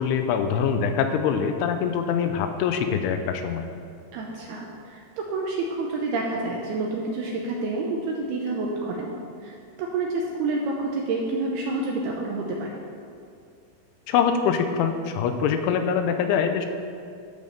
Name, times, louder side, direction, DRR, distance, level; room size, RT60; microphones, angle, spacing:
voice 1, 0.0-3.7 14.1-16.7, left 7 dB, 85° left, 7 dB, 3.1 m, -24 dB
voice 2, 4.1-9.1 9.4-12.7, right 3 dB, 80° right, -1 dB, 2.3 m, -28 dB
12.0 x 5.3 x 6.8 m, 2.5 s
omnidirectional pair, 5.5 m